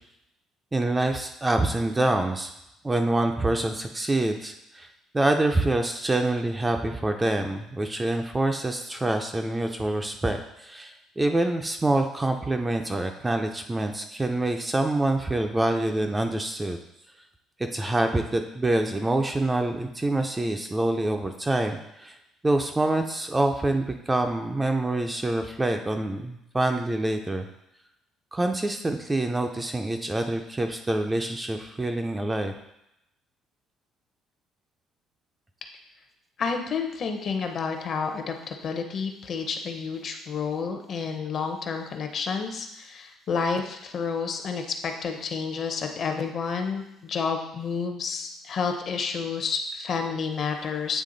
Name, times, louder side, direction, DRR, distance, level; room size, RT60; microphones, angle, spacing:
voice 1, 0.7-2.5 2.8-4.9 5.1-16.8 17.6-22.2 22.4-27.5 28.3-32.5, right 2 dB, 10° right, 4 dB, 0.4 m, -26 dB
voice 2, 36.4-51.0, left 5 dB, 40° left, 5 dB, 0.7 m, -30 dB
8.3 x 3.4 x 3.8 m, 0.84 s
cardioid pair, 155°, 0 cm